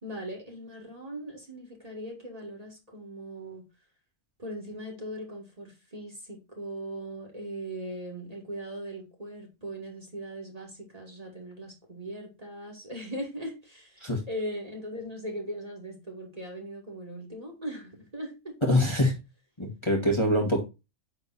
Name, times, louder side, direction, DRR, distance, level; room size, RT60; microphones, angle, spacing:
voice 1, 0.0-3.6 4.4-18.6, right 1 dB, 25° right, 1 dB, 2.3 m, -39 dB
voice 2, 18.6-19.2 19.6-20.6, left 1 dB, 20° left, -1 dB, 1.8 m, -24 dB
9.6 x 3.9 x 4.1 m, 0.26 s
omnidirectional pair, 1.4 m